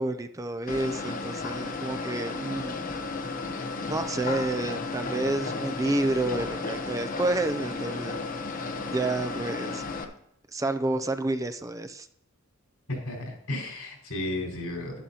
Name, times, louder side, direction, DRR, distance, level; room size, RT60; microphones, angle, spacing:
voice 1, 0.0-2.8 3.8-8.2 8.9-9.8 10.5-12.1, right 2 dB, 15° right, 10 dB, 0.4 m, -29 dB
sound 1, 0.7-10.0, left 3 dB, 40° left, 1.0 m, -33 dB
voice 2, 12.9-15.0, left 1 dB, 80° left, 0 dB, 5.0 m, -33 dB
11.5 x 11.5 x 2.8 m, 0.74 s
head